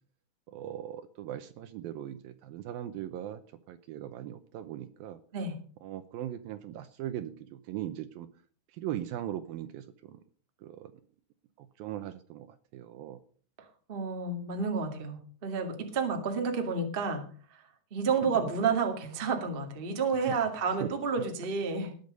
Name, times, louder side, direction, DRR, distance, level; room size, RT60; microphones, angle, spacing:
voice 1, 0.5-3.4 3.7-5.2 5.8-8.3 8.7-10.2 10.6-10.9 11.6-12.5 12.7-13.2 18.2-18.5 20.3-20.4 20.8-20.9, right 11 dB, 75° right, 11 dB, 2.3 m, -39 dB
voice 2, 13.9-17.3 17.9-21.9, right 5 dB, 30° right, 4 dB, 1.0 m, -30 dB
19.0 x 8.2 x 5.3 m, 0.44 s
omnidirectional pair, 4.7 m